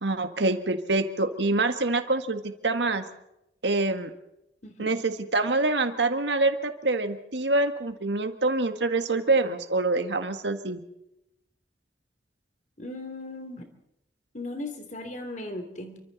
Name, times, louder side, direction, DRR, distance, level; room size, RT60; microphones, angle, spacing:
voice 1, 0.0-3.0 3.6-4.1 4.8-10.8, right 2 dB, 75° right, 8 dB, 1.8 m, -26 dB
voice 2, 4.6-4.9 12.8-13.7 14.3-16.0, left 2 dB, 45° left, 6 dB, 3.1 m, -37 dB
28.5 x 24.5 x 4.2 m, 0.84 s
head